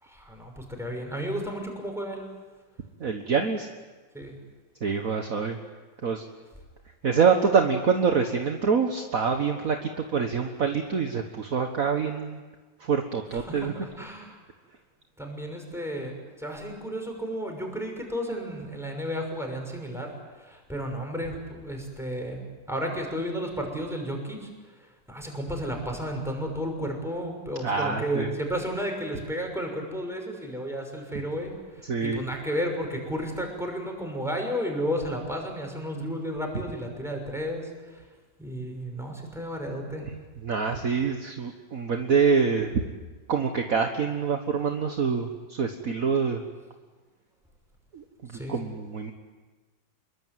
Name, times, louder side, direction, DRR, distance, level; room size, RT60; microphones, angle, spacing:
voice 1, 0.0-2.2 4.1-4.4 13.3-14.4 15.2-20.1 20.4-22.4 22.7-24.5 24.8-38.0 38.4-40.1 48.3-48.6, equal, ahead, 2 dB, 6.0 m, -33 dB
voice 2, 3.0-3.7 4.8-5.6 6.0-6.2 7.0-12.4 12.8-13.7 27.6-28.3 31.8-32.2 40.0-40.1 40.4-42.8 43.3-46.4 47.9-49.1, right 5 dB, 50° right, 4 dB, 1.7 m, -26 dB
27.0 x 23.0 x 9.3 m, 1.3 s
omnidirectional pair, 2.0 m